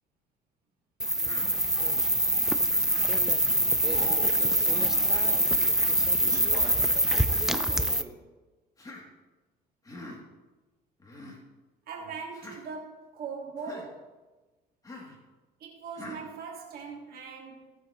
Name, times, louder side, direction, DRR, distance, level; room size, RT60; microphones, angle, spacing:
sound 1, 1.0-8.0, right 1 dB, 5° right, 0.5 m, -24 dB
Human voice, 1.2-1.5 2.6-2.9 3.9-4.2 5.0-5.2 6.3-6.5 7.5-7.8 8.8-9.0 9.8-10.2 11.0-11.4 12.3-12.6 13.6-13.9 14.8-15.2 15.9-16.2, left 1 dB, 20° left, 2.7 m, -44 dB
voice 1, 3.8-5.8 6.2-8.2, right 3 dB, 20° right, -1 dB, 2.6 m, -43 dB
voice 2, 11.9-14.2 15.6-17.7, right 5 dB, 65° right, -1 dB, 2.0 m, -40 dB
18.0 x 7.5 x 3.1 m, 1.2 s
cardioid pair, 110°, 17 cm